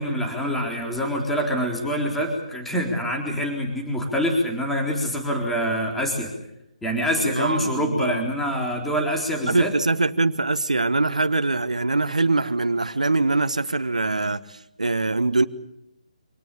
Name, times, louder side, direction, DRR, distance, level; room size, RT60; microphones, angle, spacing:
voice 1, 0.0-6.3 6.8-9.7, equal, 5° left, 0 dB, 3.9 m, -25 dB
voice 2, 7.1-8.3 9.5-15.4, right 3 dB, 80° right, 12 dB, 1.2 m, -23 dB
25.5 x 18.5 x 8.6 m, 0.85 s
figure-of-eight pair, 145°, 4 cm